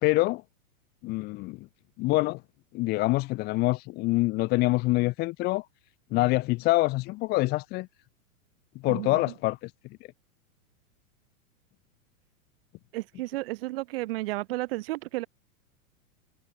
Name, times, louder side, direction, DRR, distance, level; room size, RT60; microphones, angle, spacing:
voice 1, 0.0-0.4 1.0-1.7 2.0-2.4 2.7-5.6 6.1-7.9 8.8-9.7, left 21 dB, 20° left, 1.3 m, -25 dB
voice 2, 8.9-9.2 12.9-15.3, right 19 dB, 45° right, 1.7 m, -32 dB
supercardioid pair, 170°, 42 cm